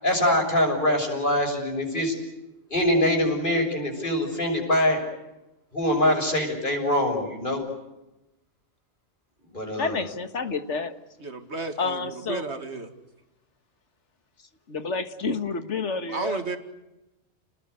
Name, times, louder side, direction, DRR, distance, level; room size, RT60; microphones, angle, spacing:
voice 1, 0.0-2.2 2.7-5.0 5.7-7.6 9.5-10.0, left 1 dB, 45° left, 2 dB, 6.9 m, -24 dB
voice 2, 9.8-10.9 11.8-12.4 14.7-16.6, left 4 dB, 80° left, 9 dB, 1.9 m, -29 dB
voice 3, 11.2-12.9 16.1-16.6, right 3 dB, 65° right, 7 dB, 2.6 m, -33 dB
30.0 x 19.5 x 8.2 m, 0.97 s
omnidirectional pair, 1.2 m